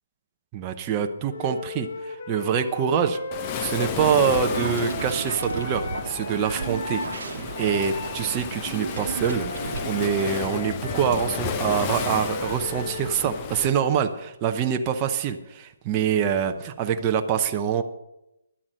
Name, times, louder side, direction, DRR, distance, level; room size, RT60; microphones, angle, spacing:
voice 1, 0.5-3.2 3.6-17.8, right 8 dB, 25° right, 5 dB, 0.8 m, -25 dB
Wind instrument woodwind instrument, 1.3-7.1 7.5-13.2, left 3 dB, 45° left, 1.2 m, -36 dB
Waves surf, 3.3-13.7, left 7 dB, 25° left, 0.9 m, -33 dB
sound 1, 4.5-9.9, right 5 dB, 65° right, 1.2 m, -34 dB
11.5 x 8.6 x 6.3 m, 0.89 s
hypercardioid pair, 150°, 0 cm